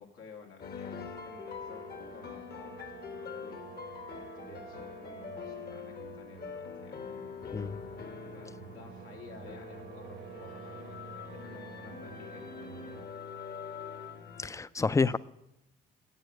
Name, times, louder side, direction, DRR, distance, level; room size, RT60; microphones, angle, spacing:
voice 1, 0.0-3.7 4.1-7.1 8.3-12.9 14.9-15.1, left 5 dB, 90° left, 0 dB, 2.2 m, -53 dB
sound 1, 0.6-14.5, left 6 dB, 55° left, 1.3 m, -44 dB
sound 2, 1.1-13.1, right 8 dB, 65° right, 0.9 m, -50 dB
voice 2, 14.4-15.2, left 4 dB, 15° left, 17 dB, 0.4 m, -28 dB
8.4 x 7.8 x 8.9 m, 0.86 s
cardioid pair, 90°, 20 cm